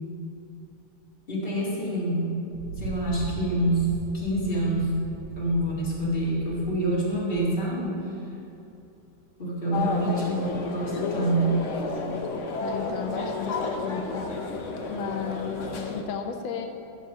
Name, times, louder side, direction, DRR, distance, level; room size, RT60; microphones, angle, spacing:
voice 1, 1.3-2.3 2.8-4.9 5.4-8.0 9.4-11.6, right 1 dB, 30° left, -6 dB, 2.2 m, -26 dB
Thunder, 2.5-8.0, right 5 dB, 90° right, 1.4 m, -39 dB
sound 1, 9.7-16.0, left 3 dB, 60° left, 0.8 m, -31 dB
voice 2, 12.6-14.3 14.9-16.7, left 7 dB, 90° left, 4 dB, 1.5 m, -34 dB
11.5 x 4.3 x 6.1 m, 2.7 s
omnidirectional pair, 2.1 m